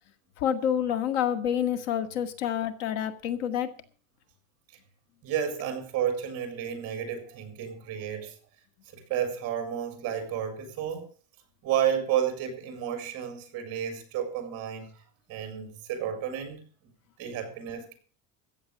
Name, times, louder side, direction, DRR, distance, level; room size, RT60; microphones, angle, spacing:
voice 1, 0.4-3.7, left 9 dB, 75° left, 1.9 m, -28 dB
voice 2, 5.2-8.3 8.9-11.1 11.6-14.9 15.3-16.7 17.2-18.0, right 9 dB, 40° right, 4.3 m, -31 dB
15.0 x 8.6 x 6.6 m
cardioid pair, 180°, 38 cm